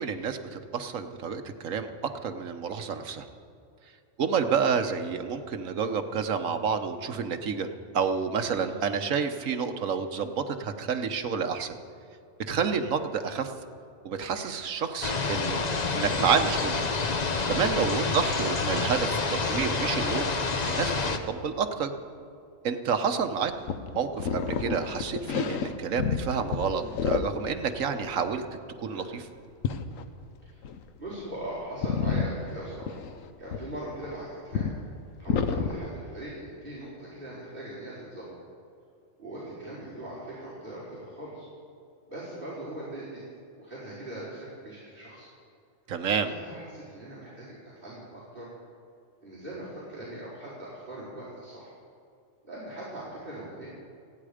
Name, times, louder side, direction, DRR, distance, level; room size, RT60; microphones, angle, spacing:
voice 1, 0.0-1.9 2.2-3.3 4.2-7.7 7.9-11.7 12.5-13.5 14.0-15.6 15.9-16.8 17.5-20.3 20.7-21.9 22.6-23.5 23.9-28.5 28.8-29.3 45.9-46.3, right 6 dB, 75° right, 7 dB, 1.4 m, -29 dB
voice 2, 8.5-8.9 17.6-17.9 28.8-29.2 30.4-30.6 31.0-32.9 33.4-34.7 35.2-38.3 39.2-41.5 42.1-43.2 43.6-45.3 46.1-48.5 49.2-51.7 52.4-53.7, right 1 dB, 40° right, -11 dB, 4.5 m, -40 dB
sound 1, 15.0-21.2, left 3 dB, 35° left, 0.9 m, -28 dB
sound 2, 23.2-26.3 26.5-27.5 27.8-28.3 29.6-30.0 30.6-30.8 31.1-31.5 31.8-34.1 34.5-34.8 35.3-35.7, left 6 dB, 80° left, 1.2 m, -30 dB
28.5 x 9.6 x 5.0 m, 2.5 s
omnidirectional pair, 1.4 m